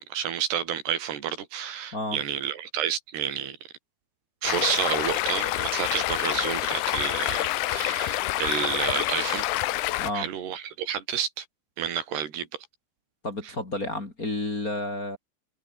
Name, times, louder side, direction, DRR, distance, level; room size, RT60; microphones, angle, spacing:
voice 1, 0.0-3.6 4.4-9.5 10.1-11.5 11.8-12.7 13.4-13.5, right 9 dB, 85° right, 4.9 m, -30 dB
Stream, 4.4-10.1, left 16 dB, 90° left, 1.7 m, -27 dB
voice 2, 13.2-15.2, left 1 dB, 20° left, 3.4 m, -31 dB
omnidirectional pair, 4.6 m